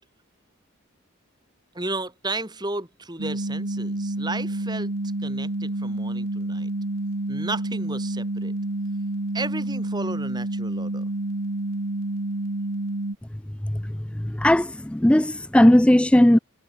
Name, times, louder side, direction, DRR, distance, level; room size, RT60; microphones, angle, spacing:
voice 1, 1.7-4.9 5.2-6.7 7.3-8.5 9.3-11.1, right 2 dB, 20° right, 4.5 m, -33 dB
sound 1, 3.2-13.1, right 2 dB, 80° right, 1.7 m, -29 dB
voice 2, 14.1-16.4, left 1 dB, 5° left, 0.3 m, -17 dB
head